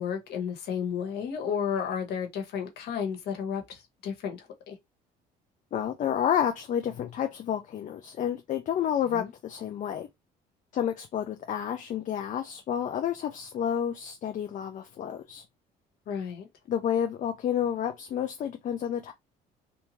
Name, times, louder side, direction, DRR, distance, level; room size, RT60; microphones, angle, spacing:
voice 1, 0.0-4.7 9.1-9.3 16.1-16.5, left 7 dB, 75° left, 1.3 m, -32 dB
voice 2, 5.7-10.1 10.7-15.4 16.7-19.1, left 9 dB, 50° left, 0.5 m, -30 dB
3.4 x 2.7 x 3.1 m
cardioid pair, 110°, 17 cm